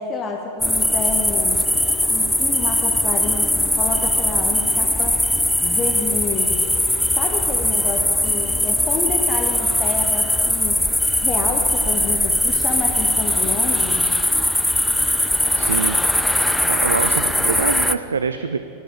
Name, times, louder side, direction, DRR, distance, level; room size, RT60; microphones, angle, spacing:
voice 1, 0.0-1.7 2.1-5.2 5.6-6.6 7.2-10.8 11.2-14.1, left 4 dB, 25° left, 2 dB, 0.9 m, -29 dB
sound 1, 0.6-18.0, left 1 dB, 5° left, 0.3 m, -20 dB
sound 2, 0.6-13.1, right 5 dB, 30° right, 0.9 m, -42 dB
voice 2, 15.6-16.3 16.7-18.6, right 5 dB, 70° right, 10 dB, 0.3 m, -25 dB
10.5 x 6.9 x 7.3 m, 2.8 s
figure-of-eight pair, 90°, 0 cm